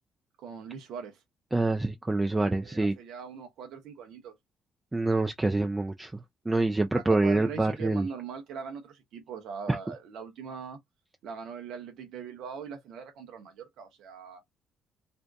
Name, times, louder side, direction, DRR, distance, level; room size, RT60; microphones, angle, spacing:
voice 1, 0.4-1.2 2.3-4.3 6.9-10.8 11.2-14.4, right 6 dB, 55° right, 0.7 m, -41 dB
voice 2, 1.5-2.9 4.9-6.1 6.5-8.1 9.7-9.8, right 2 dB, 15° right, 0.4 m, -26 dB
2.6 x 2.2 x 2.3 m
figure-of-eight pair, 50°, 0 cm